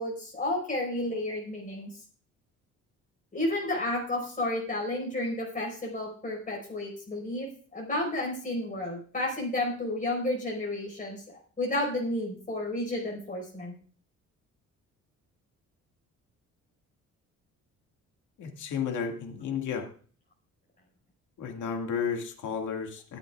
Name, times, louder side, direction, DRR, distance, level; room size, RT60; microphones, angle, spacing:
voice 1, 0.0-1.9 3.3-11.2 11.6-13.7, left 1 dB, 25° left, -2 dB, 4.8 m, -31 dB
voice 2, 18.4-19.9 21.4-23.2, left 6 dB, 80° left, 3 dB, 2.1 m, -32 dB
20.0 x 8.2 x 2.4 m, 0.42 s
cardioid pair, 90°, 30 cm